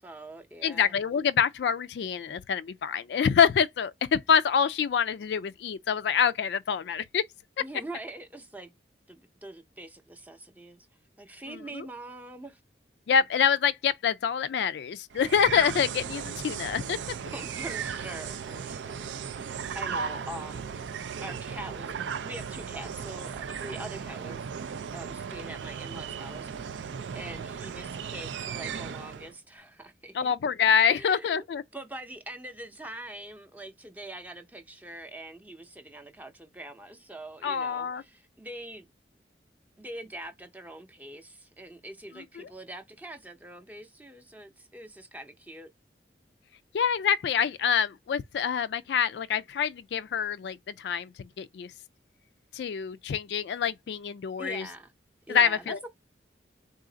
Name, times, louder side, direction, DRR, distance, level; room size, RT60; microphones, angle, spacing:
voice 1, 0.0-0.9 7.6-8.7 9.1-10.9 11.2-12.6 17.3-22.0 22.2-24.4 24.9-30.3 30.9-31.4 31.7-38.9 39.8-45.7 54.4-54.9 55.3-55.9, right 1 dB, 10° right, 0.6 m, -43 dB
voice 2, 0.6-7.2 11.5-11.9 13.1-17.0 30.1-31.6 37.4-38.0 42.4-42.5 46.7-51.7 52.5-54.7 55.3-55.8, left 7 dB, 70° left, 0.3 m, -26 dB
sound 1, 15.1-29.3, right 7 dB, 90° right, 0.4 m, -36 dB
4.0 x 2.4 x 3.8 m
head